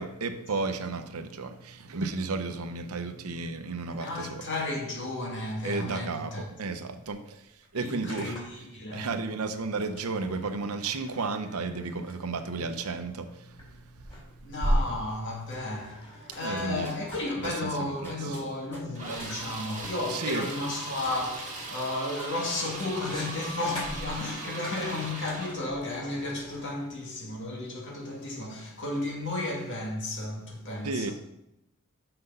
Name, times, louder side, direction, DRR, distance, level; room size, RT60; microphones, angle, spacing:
voice 1, 0.0-4.4 5.6-8.4 8.9-14.5 16.4-16.9 17.4-18.4 20.1-20.5 30.8-31.1, right 3 dB, 75° right, 0.7 m, -33 dB
voice 2, 3.9-6.5 7.7-9.1 14.4-31.1, left 2 dB, 55° left, 2.1 m, -33 dB
sound 1, 7.4-8.7 9.7-26.9, equal, 25° left, 3.2 m, -38 dB
sound 2, 16.3-24.5, equal, 10° left, 2.5 m, -51 dB
sound 3, 19.0-25.6, right 2 dB, 35° right, 1.9 m, -39 dB
6.6 x 6.0 x 5.5 m
head